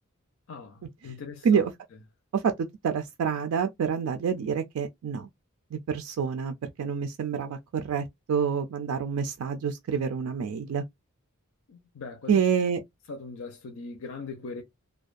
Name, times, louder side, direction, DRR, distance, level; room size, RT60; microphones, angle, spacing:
voice 1, 0.5-1.6 11.7-12.4 13.1-14.6, left 4 dB, 70° left, 0.5 m, -40 dB
voice 2, 2.8-5.3 5.7-10.8 12.3-12.8, right 6 dB, 80° right, 0.3 m, -27 dB
2.4 x 2.2 x 2.4 m
head